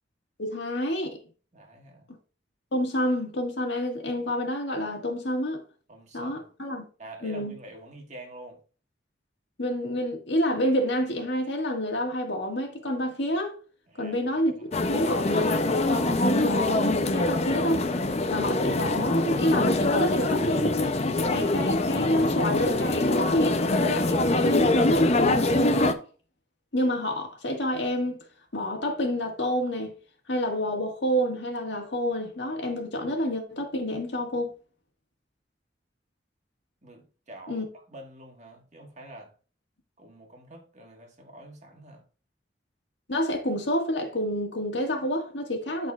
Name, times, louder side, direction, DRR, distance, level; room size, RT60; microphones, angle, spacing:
voice 1, 0.4-1.2 2.7-5.6 6.1-6.8 7.2-7.6 9.6-13.6 14.0-17.9 18.3-20.8 21.3-26.0 26.7-28.2 28.5-29.9 30.3-34.5 37.5-37.7 43.1-45.9, equal, 85° left, 1.8 m, -28 dB
voice 2, 1.5-2.1 5.9-6.4 7.0-8.6 13.9-15.0 36.8-39.3 40.0-42.0, right 1 dB, 40° right, 1.6 m, -47 dB
sound 1, 14.7-25.9, left 2 dB, 40° left, 0.6 m, -24 dB
12.5 x 4.2 x 2.4 m
head